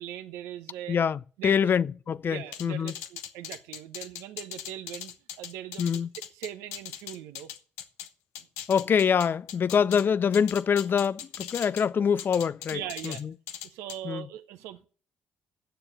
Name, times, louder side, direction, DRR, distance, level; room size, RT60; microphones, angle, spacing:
voice 1, 0.0-1.0 1.4-1.7 2.2-5.8 6.3-7.5 12.7-13.2 13.6-14.9, right 11 dB, 80° right, 0.8 m, -40 dB
voice 2, 0.9-2.9 5.8-6.1 8.7-12.8 13.0-13.3 14.0-14.3, left 7 dB, 45° left, 0.5 m, -25 dB
sound 1, 2.5-8.1 8.4-10.0 10.3-11.9 12.2-13.2 13.5-14.0, left 10 dB, 80° left, 0.8 m, -39 dB
9.0 x 7.1 x 7.9 m
hypercardioid pair, 50°, 5 cm